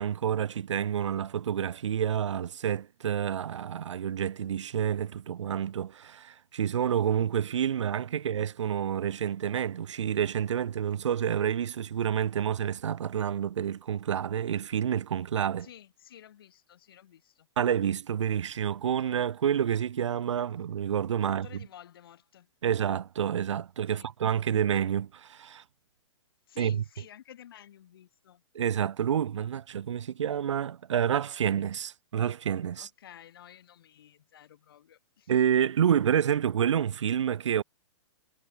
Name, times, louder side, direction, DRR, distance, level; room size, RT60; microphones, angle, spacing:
voice 1, 0.0-15.7 17.6-21.5 22.6-25.6 26.6-26.8 28.5-32.9 35.3-37.6, right 9 dB, 70° right, 1.0 m, -28 dB
voice 2, 15.6-17.5 21.2-22.5 23.9-24.1 26.5-28.4 32.7-35.3, left 11 dB, 50° left, 5.9 m, -52 dB
hypercardioid pair, 175°, 16 cm